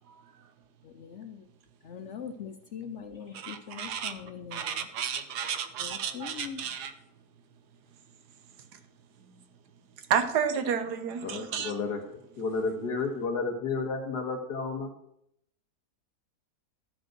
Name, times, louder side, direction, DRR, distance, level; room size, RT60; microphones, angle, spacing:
voice 1, 0.8-1.5 1.8-4.9 5.8-6.6, left 7 dB, 65° left, 0.7 m, -42 dB
voice 2, 3.3-4.1 4.5-6.9 10.1-11.8, right 7 dB, 90° right, 1.5 m, -31 dB
voice 3, 11.2-12.0 12.4-14.9, left 4 dB, 90° left, 1.9 m, -31 dB
12.5 x 5.3 x 6.0 m
omnidirectional pair, 1.7 m